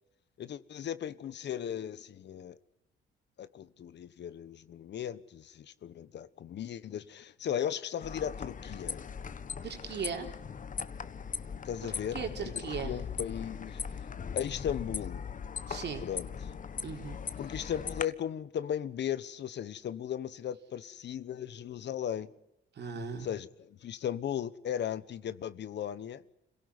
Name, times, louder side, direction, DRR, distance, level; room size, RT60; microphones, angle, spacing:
voice 1, 0.4-2.6 3.4-9.0 11.6-13.8 14.3-15.2 16.0-16.3 17.4-22.3 23.2-26.2, left 9 dB, 60° left, 1.2 m, -37 dB
sound 1, 8.0-18.0, left 6 dB, 40° left, 1.3 m, -39 dB
voice 2, 9.6-10.3 11.8-13.0 15.7-16.0 16.8-17.2 22.8-23.3, right 6 dB, 60° right, 4.1 m, -38 dB
26.5 x 17.5 x 9.8 m
cardioid pair, 90°, 20 cm